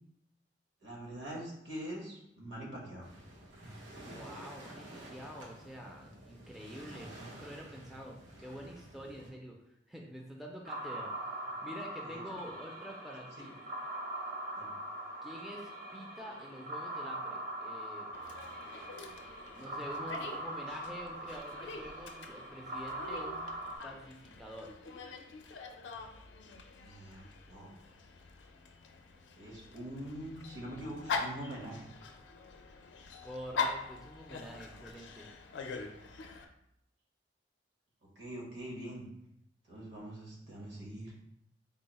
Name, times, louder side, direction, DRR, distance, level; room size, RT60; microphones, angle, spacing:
voice 1, 0.8-3.1 12.0-12.2 14.6-14.7 26.8-27.7 29.4-31.8 38.2-39.1 39.7-41.1, right 1 dB, 70° right, -2 dB, 1.1 m, -44 dB
Waves surf, 3.0-9.3, right 1 dB, 90° right, 0.9 m, -50 dB
voice 2, 4.1-9.6 9.9-11.1 11.6-13.5 15.2-18.1 19.5-23.5 23.8-24.7 33.2-35.3, equal, ahead, -1 dB, 0.4 m, -47 dB
sound 1, 10.7-23.8, right 1 dB, 50° right, 0.6 m, -42 dB
Dog, 18.1-36.4, left 4 dB, 75° left, 0.4 m, -43 dB
3.7 x 2.0 x 4.0 m, 0.77 s
head